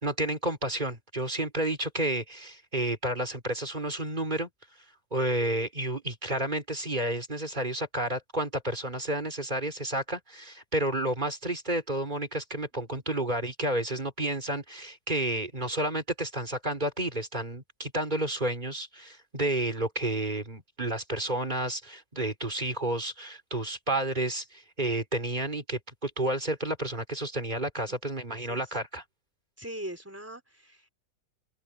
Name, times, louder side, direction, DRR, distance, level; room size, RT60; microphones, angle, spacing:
voice 1, 0.0-4.5 5.1-29.0, right 1 dB, 30° right, 3.6 m, -31 dB
voice 2, 28.3-28.8 29.6-30.9, right 1 dB, 10° right, 3.7 m, -42 dB
open air
omnidirectional pair, 1.7 m